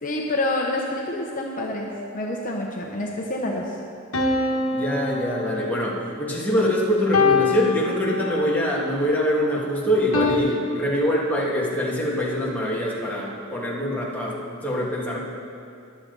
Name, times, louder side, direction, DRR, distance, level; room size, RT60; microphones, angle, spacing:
voice 1, 0.0-3.8, left 1 dB, 40° left, -1 dB, 0.9 m, -27 dB
sound 1, 4.1-5.9 7.1-8.6 10.1-10.4, left 4 dB, 75° left, 1.3 m, -24 dB
voice 2, 4.7-15.2, equal, 10° left, -5 dB, 1.9 m, -24 dB
22.0 x 7.5 x 4.0 m, 2.5 s
head